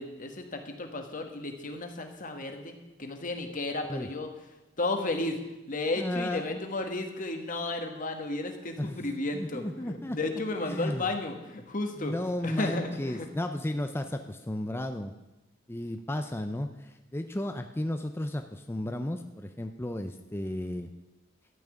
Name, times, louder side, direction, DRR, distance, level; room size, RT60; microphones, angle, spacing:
voice 1, 0.0-4.3 4.8-12.1 12.4-13.3, left 2 dB, 40° left, 5 dB, 1.4 m, -33 dB
voice 2, 6.0-6.6 8.8-9.0 9.3-10.2 10.7-11.1 12.0-15.1 15.7-20.9, left 1 dB, 10° left, 6 dB, 0.5 m, -34 dB
12.5 x 5.9 x 9.0 m, 0.99 s
head